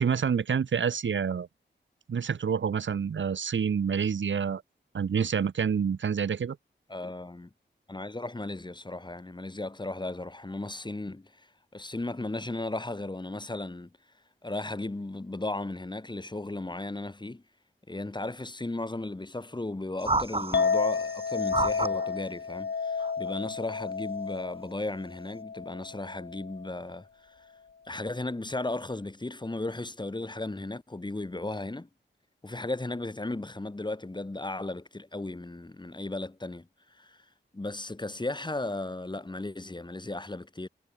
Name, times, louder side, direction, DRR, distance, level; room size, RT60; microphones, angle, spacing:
voice 1, 0.0-1.5 2.1-4.6 4.9-6.6, right 7 dB, 85° right, 1.3 m, -27 dB
voice 2, 6.9-7.5 7.9-11.5 11.7-13.9 14.4-17.4 17.9-27.5 27.8-31.9 32.4-36.7 36.9-37.2 37.5-40.7, left 2 dB, 25° left, 5.1 m, -35 dB
sound 1, 20.0-22.1 23.0-23.3, right 2 dB, 30° right, 4.0 m, -31 dB
Chink clink, 20.5-26.8, left 5 dB, 65° left, 2.1 m, -31 dB
wide cardioid pair, 105°, 19 cm